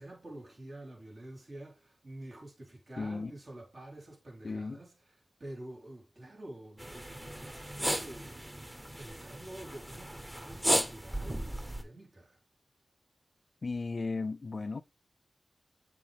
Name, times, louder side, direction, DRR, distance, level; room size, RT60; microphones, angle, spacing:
voice 1, 0.0-8.6 9.0-12.4, right 1 dB, 55° right, 3.9 m, -48 dB
voice 2, 3.0-3.3 4.4-4.8 13.6-14.8, left 3 dB, 60° left, 0.4 m, -35 dB
sound 1, 6.8-11.8, right 1 dB, 15° right, 1.2 m, -35 dB
7.3 x 5.8 x 3.5 m
cardioid pair, 45°, 0 cm